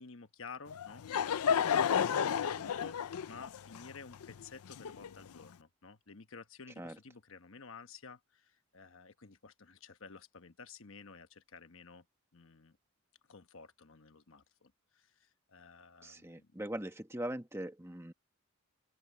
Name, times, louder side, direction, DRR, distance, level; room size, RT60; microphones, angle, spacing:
voice 1, 0.0-12.0 12.3-12.8 13.3-16.5, left 4 dB, 65° left, 1.1 m, -53 dB
Laughter / Crowd, 0.7-5.4, left 7 dB, 85° left, 0.5 m, -32 dB
voice 2, 16.0-18.1, right 1 dB, 10° right, 1.5 m, -41 dB
open air
head